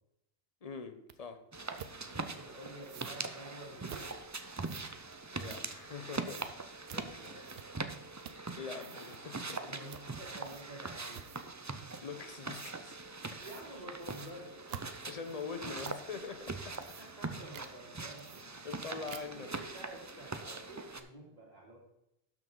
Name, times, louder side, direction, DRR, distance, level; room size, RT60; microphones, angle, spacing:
voice 1, 0.6-1.4 5.3-6.8 8.6-9.7 12.0-13.0 15.1-17.0 18.6-19.6, left 5 dB, 40° left, 8 dB, 0.9 m, -44 dB
sound 1, 1.1-1.2 1.8-2.0 2.8-3.2 3.8-4.1 4.6-6.0 6.3-6.5 6.9-7.0 7.4-7.9 8.2-8.5 8.7-9.2 9.9-10.1 10.4-10.8 11.1-11.6 12.5-12.7 13.4-13.7 14.0-16.1 16.6-17.3 17.5-17.7 18.2-18.8 19.1-19.5, right 8 dB, 75° right, 0.9 m, -50 dB
sound 2, 1.5-21.0, right 3 dB, 25° right, 0.4 m, -42 dB
voice 2, 2.0-4.1 6.9-7.6 9.6-11.3 13.4-14.6 17.0-18.7 19.1-21.8, right 1 dB, 40° right, -5 dB, 3.0 m, -50 dB
12.0 x 6.2 x 3.9 m, 0.83 s
omnidirectional pair, 1.0 m